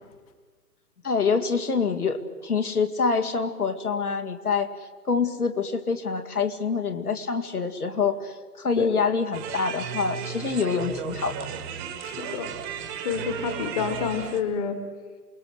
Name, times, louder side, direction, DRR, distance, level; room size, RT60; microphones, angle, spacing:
voice 1, 1.0-2.2 2.4-4.7 5.1-11.5, left 5 dB, 70° left, 6 dB, 2.4 m, -26 dB
sound 1, 9.3-14.4, right 7 dB, 15° right, 1.3 m, -35 dB
voice 2, 12.0-12.5 13.0-14.8, left 6 dB, 25° left, 9 dB, 1.7 m, -28 dB
28.0 x 20.0 x 8.0 m, 1.5 s
figure-of-eight pair, 135°, 46 cm